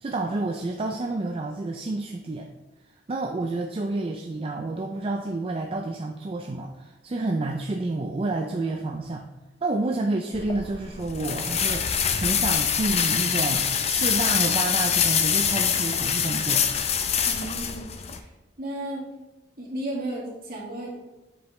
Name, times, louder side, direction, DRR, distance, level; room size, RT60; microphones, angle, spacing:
voice 1, 0.0-2.5 3.1-9.3 9.6-16.7, right 2 dB, 30° right, 3 dB, 0.4 m, -29 dB
sound 1, 10.3-18.2, left 7 dB, 35° left, 0.5 m, -25 dB
voice 2, 17.3-18.3 18.6-19.0 19.6-20.9, right 1 dB, 55° right, -4 dB, 2.0 m, -34 dB
7.4 x 5.0 x 3.1 m, 1.1 s
head